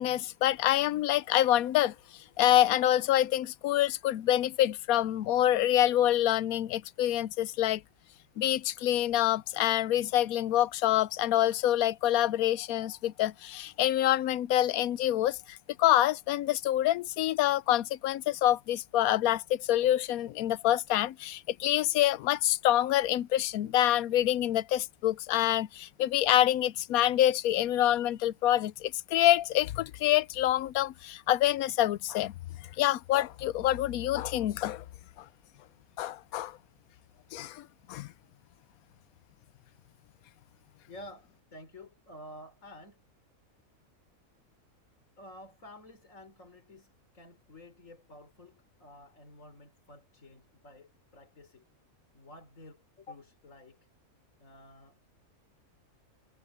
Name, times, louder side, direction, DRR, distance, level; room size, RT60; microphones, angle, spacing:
voice 1, 0.0-1.9 2.4-7.8 8.4-32.3 32.8-34.8 36.0-36.6 37.3-38.1, left 13 dB, 85° left, 1.1 m, -26 dB
voice 2, 40.9-43.0 45.2-51.7 52.1-53.9 54.4-55.0, left 1 dB, 65° left, 4.1 m, -51 dB
omnidirectional pair, 1.5 m